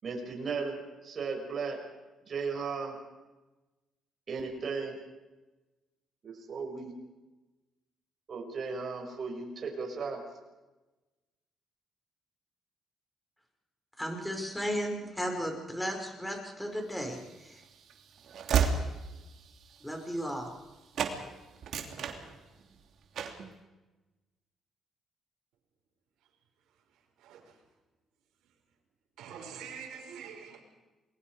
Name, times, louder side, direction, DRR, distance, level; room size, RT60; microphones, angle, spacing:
voice 1, 0.0-1.8 2.2-3.0 4.3-5.0 6.2-6.9 8.3-10.2, right 4 dB, 50° right, 6.1 m, -36 dB
voice 2, 14.0-17.6 19.8-20.5, equal, 5° left, 5.6 m, -35 dB
Train / Slam, 17.1-20.7 20.9-21.2 21.5-22.7 23.1-23.5, right 7 dB, 70° right, 2.8 m, -32 dB
voice 3, 26.7-27.6 28.4-28.5 29.2-30.6, right 7 dB, 85° right, 4.9 m, -46 dB
28.5 x 21.0 x 5.0 m
cardioid pair, 90°, 0 cm